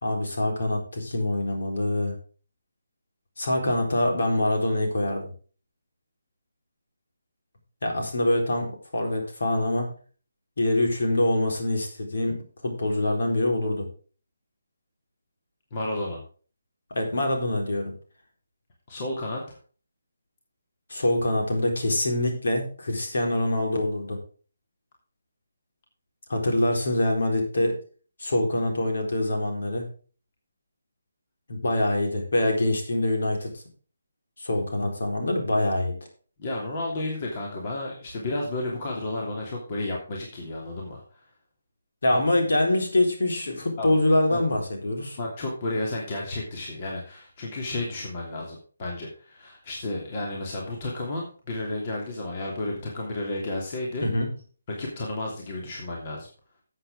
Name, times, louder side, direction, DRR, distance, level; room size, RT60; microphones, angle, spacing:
voice 1, 0.0-2.1 3.4-5.3 7.8-8.7 8.9-9.9 10.6-12.4 12.6-13.9 16.9-17.9 20.9-24.2 26.3-27.7 28.2-29.9 31.5-33.6 34.4-35.9 42.0-45.2 54.0-54.3, left 1 dB, 55° left, 2 dB, 4.1 m, -25 dB
voice 2, 15.7-16.2 18.9-19.6 36.4-41.2 43.8-44.0 44.3-44.4 45.2-54.1 54.7-56.3, left 2 dB, 35° left, -1 dB, 3.0 m, -32 dB
13.5 x 8.0 x 3.7 m, 0.39 s
figure-of-eight pair, 145°, 0 cm